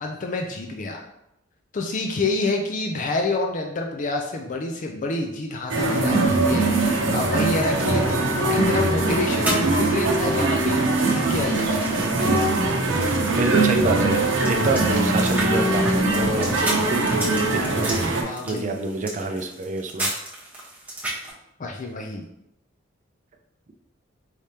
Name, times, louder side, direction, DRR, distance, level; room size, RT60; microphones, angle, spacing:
voice 1, 0.0-1.0 1.7-11.8 18.2-18.8 21.6-22.2, left 2 dB, 40° left, 2 dB, 0.4 m, -28 dB
sound 1, 5.7-18.2, right 2 dB, 70° right, 0.7 m, -22 dB
sound 2, 7.4-21.3, right 1 dB, 10° right, 1.1 m, -35 dB
voice 2, 13.3-20.1, right 3 dB, 40° right, 4 dB, 0.5 m, -27 dB
4.8 x 3.3 x 2.8 m, 0.82 s
head